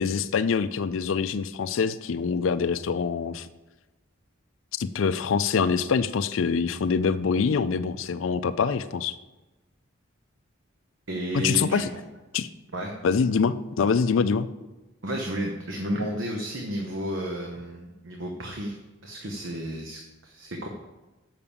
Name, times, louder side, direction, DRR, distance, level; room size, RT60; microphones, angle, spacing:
voice 1, 0.0-3.5 4.8-9.2 11.3-11.9 12.3-12.5 13.0-14.5, left 5 dB, 70° left, 12 dB, 0.4 m, -25 dB
voice 2, 11.1-11.8 12.7-12.9 15.0-18.8 19.0-20.7, right 1 dB, 65° right, 1 dB, 0.9 m, -32 dB
7.0 x 5.9 x 6.9 m, 1.1 s
head